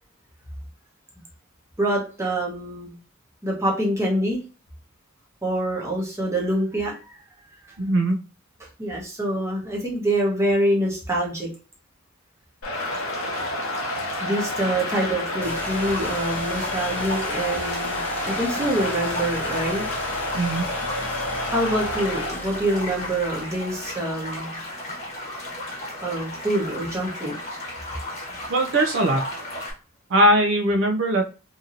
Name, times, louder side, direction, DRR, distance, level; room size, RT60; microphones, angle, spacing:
voice 1, 1.8-2.9 3.4-4.4 5.4-7.2 7.7-7.8 8.8-11.5 14.2-19.8 21.5-24.6 26.0-27.4, right 1 dB, 15° right, -2 dB, 0.9 m, -25 dB
voice 2, 7.8-8.2 20.4-20.6 28.5-29.2 30.1-31.2, right 1 dB, 60° right, 3 dB, 0.5 m, -20 dB
sound 1, 12.6-22.3, left 1 dB, 85° left, 0.8 m, -30 dB
sound 2, 12.7-29.7, left 1 dB, 35° left, 1.1 m, -35 dB
sound 3, 15.4-24.1, left 1 dB, 10° left, 0.5 m, -37 dB
2.8 x 2.7 x 2.4 m, 0.34 s
head